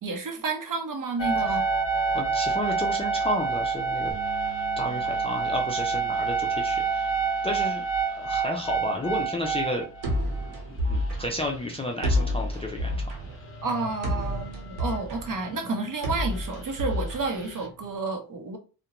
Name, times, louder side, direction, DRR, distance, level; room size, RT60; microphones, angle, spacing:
voice 1, 0.0-1.7 13.6-18.6, right 3 dB, 50° right, 0.7 m, -30 dB
sound 1, 1.2-10.6 11.3-11.4 11.5-11.6 13.2-16.0 16.3-17.6, right 5 dB, 30° left, 0.7 m, -28 dB
voice 2, 2.1-4.1 4.8-7.1 7.4-7.9 8.1-9.9 10.9-13.1, left 1 dB, 15° left, 0.3 m, -31 dB
sound 2, 4.1-10.3, right 2 dB, 5° right, 1.1 m, -48 dB
sound 3, 10.0-18.0, left 1 dB, 85° right, 1.0 m, -30 dB
2.4 x 2.1 x 2.9 m
cardioid pair, 110°, 42 cm